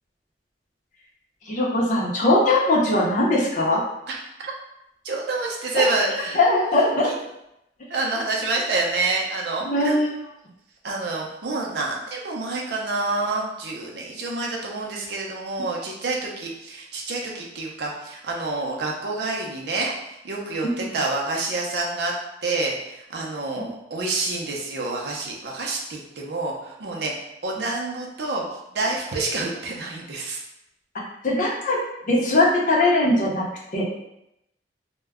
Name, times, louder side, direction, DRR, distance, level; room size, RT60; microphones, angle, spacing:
voice 1, 1.5-3.8 6.4-7.1 9.6-10.1 23.6-23.7 31.2-31.8 32.1-33.4 33.7-33.9, left 2 dB, 45° left, -4 dB, 0.6 m, -20 dB
voice 2, 4.1-4.5 5.0-6.4 7.0-7.1 7.9-10.0 10.8-22.1 22.4-27.1 27.4-30.4, right 3 dB, 65° right, -1 dB, 0.6 m, -28 dB
2.2 x 2.1 x 3.4 m, 0.84 s
head